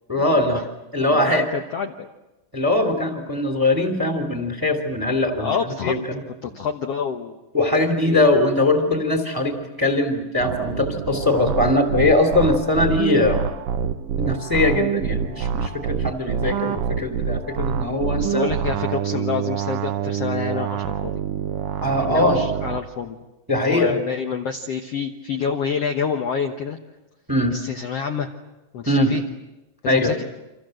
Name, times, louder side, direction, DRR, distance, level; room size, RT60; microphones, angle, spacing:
voice 1, 0.1-0.6 0.9-1.4 2.5-6.2 7.5-13.4 14.2-18.5 21.8-22.4 23.5-24.0 27.3-27.5 28.9-29.1 29.8-30.2, left 2 dB, 5° right, 6 dB, 2.2 m, -21 dB
voice 2, 1.1-2.1 5.4-6.1 6.4-7.4 7.7-8.2 18.1-21.1 22.0-23.2 23.5-26.8 27.5-28.3 28.7-29.2 29.8-30.2, left 6 dB, 60° left, 4 dB, 1.8 m, -27 dB
sound 1, 10.4-22.8, right 8 dB, 80° right, 2.9 m, -26 dB
29.0 x 26.0 x 7.8 m, 1.0 s
omnidirectional pair, 4.0 m